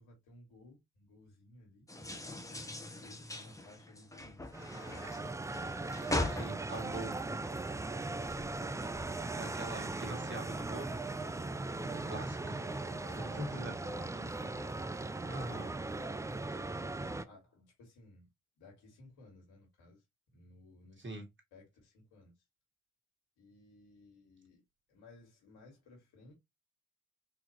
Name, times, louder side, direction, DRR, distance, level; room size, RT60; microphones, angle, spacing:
voice 1, 0.0-1.9 2.9-6.1 12.0-15.9 16.9-18.3 18.6-20.0 20.3-21.0 21.5-22.4 23.4-24.6 24.9-26.3, left 2 dB, 80° left, 2.0 m, -59 dB
taking a shower, 1.9-7.8 8.1-9.3, left 1 dB, 10° left, 0.9 m, -41 dB
sound 1, 4.5-17.2, right 2 dB, 10° right, 0.3 m, -39 dB
voice 2, 6.3-7.2 9.0-10.9 11.8-12.6 13.2-13.7 15.3-15.7 21.0-21.2, right 1 dB, 30° right, 1.9 m, -42 dB
4.0 x 2.9 x 2.9 m
hypercardioid pair, 45°, 38 cm